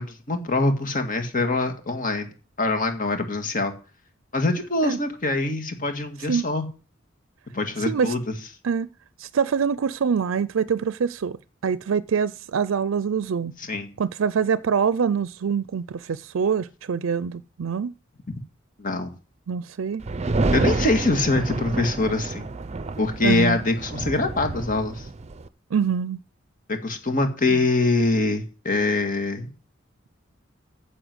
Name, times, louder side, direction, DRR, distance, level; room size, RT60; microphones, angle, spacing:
voice 1, 0.0-2.3 2.6-3.7 4.3-6.7 7.5-8.2 13.6-13.9 18.8-19.1 20.5-22.5 23.0-25.1 26.7-29.5, left 2 dB, 45° left, 2.0 m, -24 dB
voice 2, 9.2-13.5 14.0-17.9 19.5-20.0 23.2-23.6 25.7-26.2 27.5-27.7, right 6 dB, 90° right, 0.4 m, -25 dB
sound 1, 20.0-25.5, right 2 dB, 35° right, 0.6 m, -28 dB
10.0 x 6.8 x 7.9 m
head